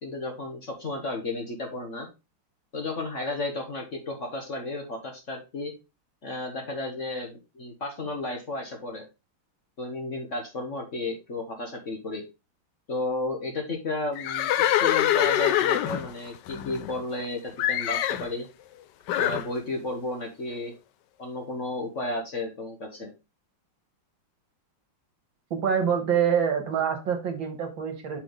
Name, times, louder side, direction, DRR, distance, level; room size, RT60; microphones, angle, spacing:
voice 1, 0.0-2.1 2.7-5.7 6.2-9.0 9.8-12.2 12.9-18.5 19.2-20.7 21.2-23.1, left 2 dB, 40° left, 2 dB, 1.4 m, -33 dB
Livestock farm animals working animals, 14.2-17.3 17.6-18.3 19.1-19.5, left 12 dB, 75° left, 1.0 m, -25 dB
voice 2, 25.5-28.2, right 7 dB, 65° right, 6 dB, 2.0 m, -26 dB
6.0 x 5.9 x 3.5 m, 0.26 s
omnidirectional pair, 2.3 m